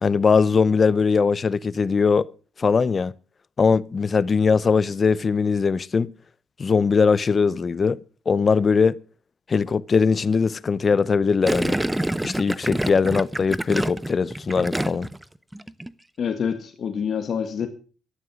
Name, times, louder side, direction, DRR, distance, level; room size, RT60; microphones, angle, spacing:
voice 1, 0.0-2.3 2.6-3.1 3.6-6.1 6.6-8.0 8.3-9.0 9.5-11.8 12.2-15.1, left 5 dB, 40° left, 0.7 m, -20 dB
Gurgling, 11.5-15.2 15.5-15.9, right 1 dB, 10° right, 0.7 m, -27 dB
voice 2, 16.2-17.7, left 7 dB, 55° left, 1.7 m, -26 dB
13.0 x 11.0 x 6.2 m
cardioid pair, 90°, 0 cm